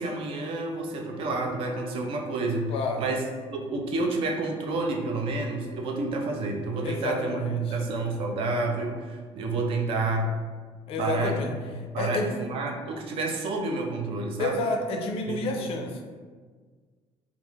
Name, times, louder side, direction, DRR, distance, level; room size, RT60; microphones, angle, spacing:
voice 1, 0.0-3.2 3.5-10.3 11.0-11.4 11.9-14.6 15.3-15.7, right 2 dB, 55° right, 2 dB, 0.4 m, -29 dB
voice 2, 2.7-3.0 6.8-7.8 10.9-11.5 12.0-12.3 14.4-16.0, left 2 dB, 60° left, 4 dB, 0.4 m, -30 dB
2.4 x 2.2 x 3.0 m, 1.5 s
cardioid pair, 140°, 11 cm